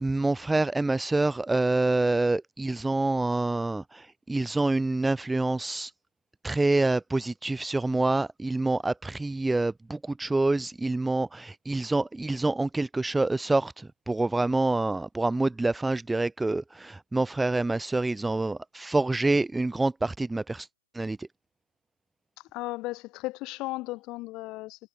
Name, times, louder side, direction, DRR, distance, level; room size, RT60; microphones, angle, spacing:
voice 1, 0.0-5.9 6.4-20.7 20.9-21.3, right 2 dB, 5° right, 0.5 m, -27 dB
voice 2, 22.5-24.9, left 21 dB, 35° left, 6.5 m, -35 dB
figure-of-eight pair, 110°, 0 cm